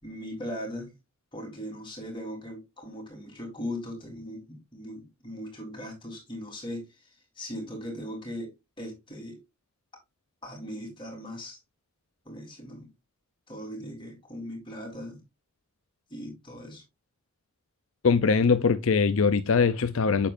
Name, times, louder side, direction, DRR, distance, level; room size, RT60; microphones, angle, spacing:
voice 1, 0.0-0.9 1.3-9.4 10.4-11.6 12.3-12.9 13.5-15.2 16.1-16.8, equal, 25° left, 3.7 m, -39 dB
voice 2, 18.0-20.3, left 5 dB, 75° left, 0.6 m, -22 dB
8.7 x 7.3 x 2.5 m
head